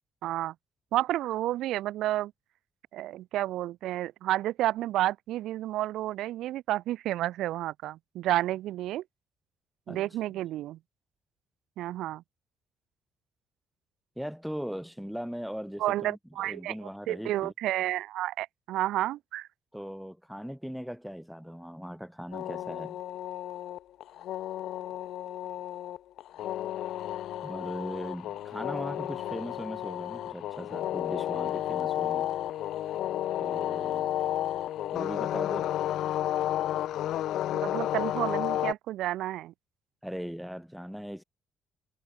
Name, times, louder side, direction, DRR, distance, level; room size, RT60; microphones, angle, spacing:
voice 1, 0.2-0.5 0.9-2.3 2.9-9.0 9.9-10.8 11.8-12.2 15.8-19.5 37.5-39.5, right 14 dB, 85° right, 1.2 m, -31 dB
voice 2, 14.2-17.5 19.7-23.0 27.4-32.3 33.4-34.1 34.9-35.7 40.0-41.2, equal, ahead, 3.7 m, -39 dB
sound 1, 22.3-38.7, left 12 dB, 80° left, 0.8 m, -32 dB
cardioid pair, 90°, 0 cm